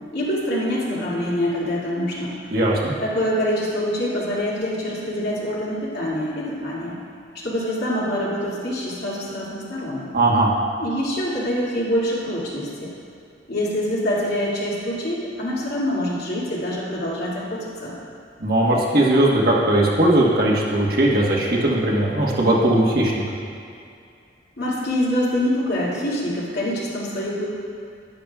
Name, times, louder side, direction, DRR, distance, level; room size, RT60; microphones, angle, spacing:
voice 1, 0.1-2.4 3.0-7.0 7.3-10.1 10.8-12.9 13.5-17.9 24.6-27.5, equal, 65° left, -7 dB, 2.3 m, -25 dB
voice 2, 2.5-2.9 10.1-10.5 18.4-23.2, right 1 dB, 55° right, -4 dB, 1.3 m, -18 dB
11.0 x 10.5 x 2.4 m, 2.4 s
head